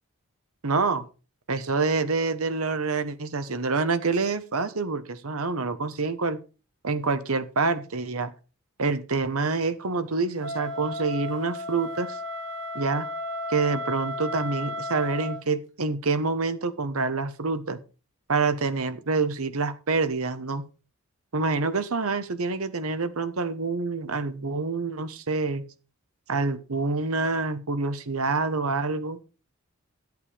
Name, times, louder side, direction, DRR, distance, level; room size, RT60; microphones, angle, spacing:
voice 1, 0.6-1.0 1.5-6.4 6.8-8.3 8.8-12.2 12.7-13.1 13.5-17.8 18.3-20.6 21.3-25.6 26.3-29.2, right 3 dB, 75° right, 12 dB, 1.1 m, -27 dB
Wind instrument woodwind instrument, 10.4-15.4, left 1 dB, 55° right, 2.4 m, -34 dB
12.0 x 8.3 x 5.0 m, 0.34 s
head